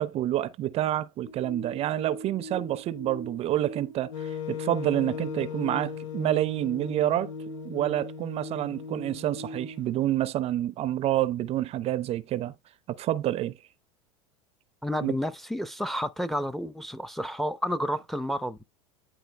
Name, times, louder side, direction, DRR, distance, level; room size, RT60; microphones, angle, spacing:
voice 1, 0.0-7.3 7.6-12.5 12.9-13.6 15.0-15.2, right 13 dB, 40° right, 0.5 m, -28 dB
sound 1, 1.2-9.8, equal, 55° left, 2.3 m, -42 dB
Wind instrument woodwind instrument, 4.1-10.2, left 11 dB, 70° left, 1.0 m, -39 dB
voice 2, 14.8-18.6, equal, ahead, 0.6 m, -30 dB
10.0 x 3.7 x 3.3 m
hypercardioid pair, 95°, 17 cm